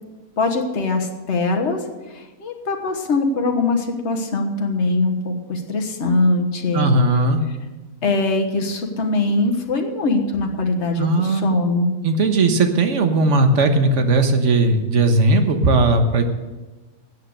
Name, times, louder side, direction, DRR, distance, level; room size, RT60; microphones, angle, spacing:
voice 1, 0.4-6.9 8.0-11.9, left 3 dB, 55° left, 3 dB, 1.6 m, -22 dB
voice 2, 6.7-7.4 11.0-11.5 12.0-16.2, right 2 dB, 60° right, 6 dB, 1.5 m, -17 dB
13.5 x 8.8 x 6.6 m, 1.2 s
omnidirectional pair, 1.5 m